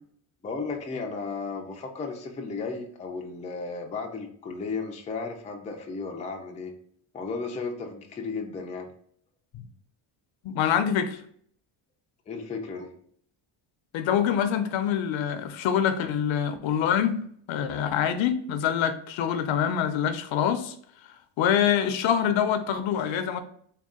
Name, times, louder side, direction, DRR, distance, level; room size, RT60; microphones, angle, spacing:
voice 1, 0.4-6.7 7.1-8.9 12.3-12.9, left 4 dB, 15° left, 2 dB, 0.3 m, -34 dB
voice 2, 10.4-11.2 13.9-17.2 17.5-20.7 21.4-23.4, left 9 dB, 65° left, 9 dB, 0.6 m, -25 dB
3.7 x 2.3 x 3.6 m, 0.62 s
cardioid pair, 130°, 50 cm